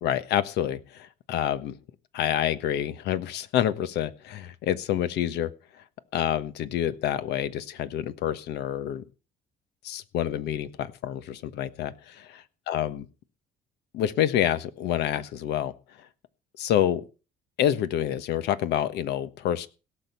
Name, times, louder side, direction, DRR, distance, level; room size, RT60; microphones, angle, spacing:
voice 1, 0.0-1.8 2.1-5.5 6.1-9.0 9.8-13.0 13.9-15.7 16.6-17.0 17.6-19.7, left 11 dB, 80° left, 13 dB, 1.3 m, -27 dB
17.0 x 6.7 x 6.8 m, 0.34 s
cardioid pair, 110°, 17 cm